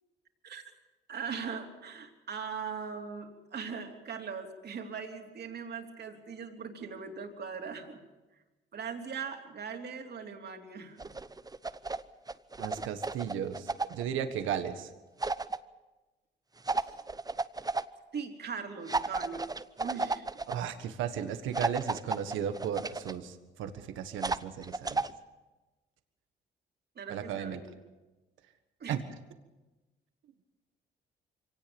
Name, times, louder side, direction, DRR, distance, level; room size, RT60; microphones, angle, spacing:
voice 1, 1.1-8.0 8.7-11.2 16.8-17.0 18.1-20.3 27.0-27.6 28.8-29.0, right 6 dB, 55° right, 4 dB, 3.5 m, -40 dB
sound 1, 11.0-12.0 12.3-14.0 15.2-15.6 16.6-17.8 18.9-20.5 21.5-23.1 24.2-25.1, right 3 dB, 20° right, 1.0 m, -33 dB
voice 2, 12.6-14.9 20.5-25.0 27.1-27.6 28.9-29.0, right 9 dB, 85° right, 8 dB, 1.5 m, -35 dB
24.0 x 18.0 x 7.1 m, 1.1 s
supercardioid pair, 65°, 20 cm